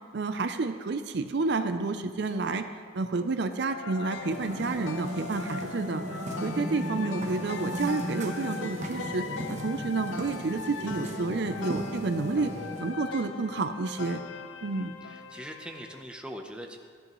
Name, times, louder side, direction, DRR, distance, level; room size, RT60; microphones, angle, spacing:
voice 1, 0.1-2.7 2.9-6.0 6.4-9.2 9.5-12.5 12.8-14.2 14.6-14.9, right 3 dB, 55° right, 8 dB, 0.5 m, -30 dB
sound 1, 3.7-16.0, left 6 dB, 70° left, 0.5 m, -40 dB
sound 2, 4.1-13.0, right 1 dB, 35° right, 0.9 m, -36 dB
voice 2, 14.7-16.8, equal, 5° right, 3 dB, 0.7 m, -42 dB
14.5 x 10.5 x 3.1 m, 2.1 s
head